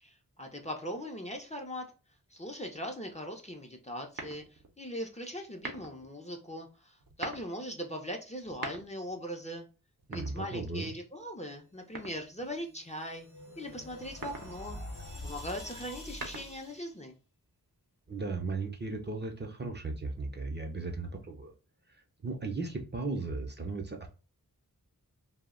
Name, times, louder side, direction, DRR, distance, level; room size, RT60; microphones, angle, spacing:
voice 1, 0.0-1.8 2.3-9.7 10.1-13.3 13.6-14.8 15.2-17.2, equal, 20° left, 2 dB, 0.5 m, -40 dB
sound 1, 4.1-4.7 5.5-6.1 7.0-7.5 8.4-9.2 10.0-10.9 11.9-12.6 14.0-14.6 15.9-16.8, right 3 dB, 65° right, 0.6 m, -43 dB
voice 2, 10.1-10.9 18.1-21.5 22.2-24.1, right 3 dB, 30° right, 3 dB, 0.5 m, -36 dB
sound 2, 12.4-16.9, left 1 dB, 60° left, 0.8 m, -46 dB
2.2 x 2.0 x 3.5 m, 0.33 s
wide cardioid pair, 40°, 36 cm